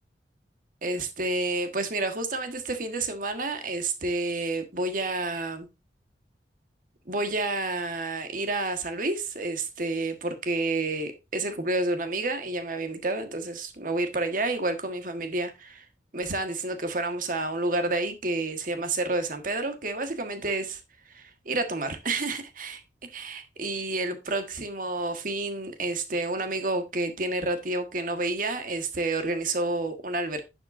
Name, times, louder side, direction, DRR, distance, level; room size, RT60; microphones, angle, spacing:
voice 1, 0.8-5.7 7.1-15.9 16.1-20.8 21.0-22.8 23.1-30.4, right 2 dB, 50° right, 1.5 m, -29 dB
11.0 x 7.6 x 2.6 m
head